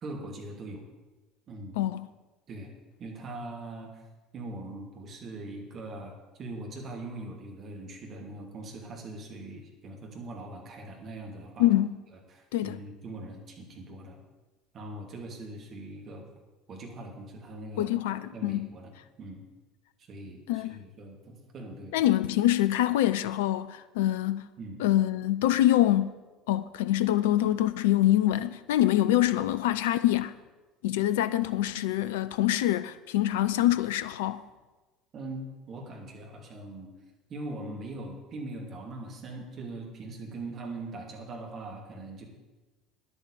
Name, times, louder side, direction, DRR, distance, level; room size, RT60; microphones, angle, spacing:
voice 1, 0.0-0.8 1.5-1.8 2.5-2.7 3.0-4.0 4.3-11.7 12.3-14.2 14.7-16.3 16.7-17.9 18.3-18.9 19.2-19.4 20.1-22.0 24.6-24.8 35.1-36.9 37.3-42.3, right 2 dB, 40° right, 2.8 m, -41 dB
voice 2, 11.6-12.0 12.5-12.8 17.8-18.7 20.5-20.8 21.9-24.4 24.8-26.1 26.5-30.3 30.8-34.4, left 13 dB, 65° left, 0.4 m, -25 dB
10.5 x 8.8 x 7.2 m
figure-of-eight pair, 60°, 0 cm